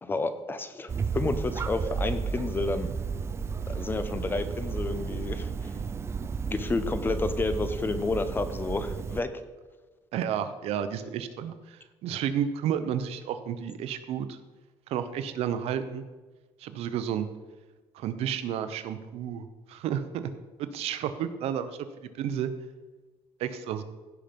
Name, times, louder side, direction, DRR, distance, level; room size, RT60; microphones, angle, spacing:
voice 1, 0.0-2.9 3.7-5.7 6.5-9.3, left 3 dB, 20° left, 11 dB, 0.8 m, -30 dB
sound 1, 0.9-9.2, right 5 dB, 25° right, 0.4 m, -33 dB
voice 2, 10.1-14.4 14.9-16.0 16.6-17.3 17.9-20.3 20.7-21.8 22.2-22.5 23.4-23.8, right 9 dB, 75° right, 11 dB, 0.9 m, -31 dB
16.0 x 5.8 x 5.2 m, 1.3 s
cardioid pair, 140°, 11 cm